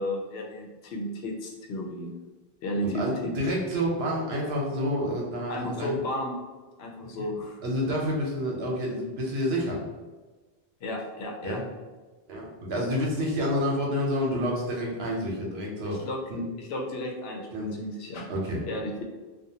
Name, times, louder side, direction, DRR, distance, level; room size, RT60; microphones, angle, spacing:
voice 1, 0.0-2.1 2.6-3.4 5.5-6.4 6.8-7.6 10.8-11.6 16.0-16.2 16.6-18.3 18.7-19.0, left 1 dB, 85° left, 0 dB, 0.8 m, -33 dB
voice 2, 2.8-6.0 7.0-7.1 7.6-9.8 11.4-11.6 12.3-16.4 17.5-17.7 18.3-18.6, equal, 85° right, -2 dB, 1.0 m, -29 dB
2.5 x 2.2 x 2.7 m, 1.3 s
omnidirectional pair, 1.0 m